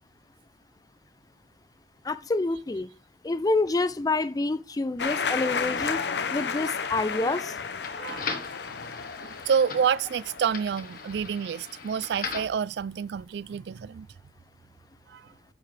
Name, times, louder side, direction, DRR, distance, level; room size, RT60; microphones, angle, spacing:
voice 1, 2.0-2.9 3.2-6.0 6.3-7.5, left 2 dB, 20° left, 0.4 m, -27 dB
sound 1, 5.0-11.6, left 5 dB, 70° left, 0.7 m, -33 dB
sound 2, 6.7-12.6, left 5 dB, 55° left, 1.3 m, -40 dB
voice 2, 7.9-8.4 9.2-14.1 15.1-15.3, right 7 dB, 70° right, 0.3 m, -28 dB
10.0 x 7.0 x 3.3 m
head